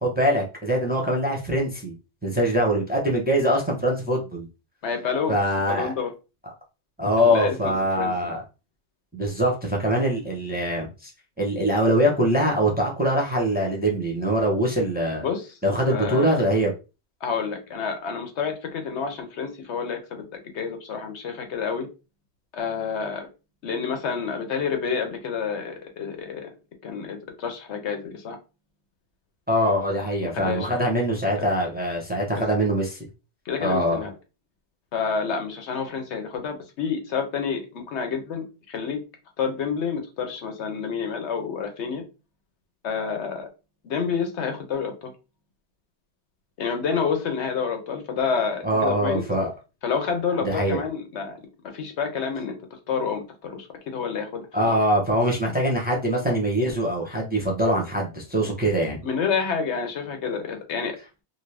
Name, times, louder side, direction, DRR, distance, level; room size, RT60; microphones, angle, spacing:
voice 1, 0.0-2.0 2.2-4.5 5.3-5.9 7.0-8.4 9.1-11.1 11.4-15.3 15.6-16.7 29.5-33.0 33.6-34.0 48.6-49.5 50.4-50.8 54.5-59.0, equal, 10° right, -1 dB, 0.6 m, -23 dB
voice 2, 4.8-5.3 5.7-6.1 7.2-8.1 15.2-15.5 15.9-16.5 17.2-21.9 22.5-23.3 23.6-26.5 26.8-28.4 30.2-30.8 31.4-31.5 32.3-32.4 33.5-34.1 34.9-39.0 39.4-42.0 42.8-43.5 43.8-45.1 46.6-49.2 49.8-51.4 51.7-52.6 52.9-53.7 53.9-54.8 59.0-61.0, left 6 dB, 80° left, 5 dB, 1.1 m, -29 dB
2.7 x 2.6 x 3.2 m, 0.30 s
omnidirectional pair, 1.1 m